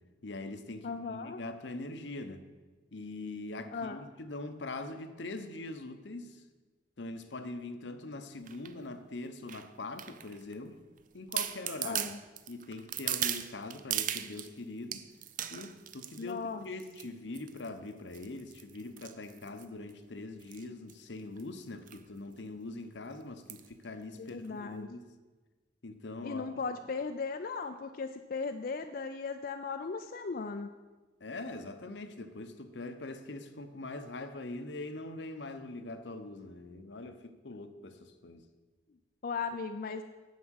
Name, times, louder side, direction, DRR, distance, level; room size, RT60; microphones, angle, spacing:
voice 1, 0.2-2.5 2.9-6.4 7.0-10.8 11.1-12.1 12.5-15.1 15.5-25.1 25.8-26.5 31.2-38.5, left 2 dB, 80° left, 9 dB, 0.9 m, -42 dB
voice 2, 0.8-1.4 3.7-4.0 11.8-12.2 16.2-16.6 24.2-24.9 26.2-30.7 39.2-40.0, left 4 dB, 50° left, 7 dB, 0.4 m, -37 dB
sound 1, 8.5-8.7 9.5-10.5 11.0-11.1 11.3-14.5 14.9-16.3 16.8-17.1 17.3-17.7 18.1-19.9 20.4-20.6 20.9-21.0 21.2-21.4 21.9-22.0 22.4-22.5 23.5-23.7 24.3-24.4, right 11 dB, 50° right, 0.5 m, -37 dB
9.4 x 7.2 x 6.3 m, 1.2 s
head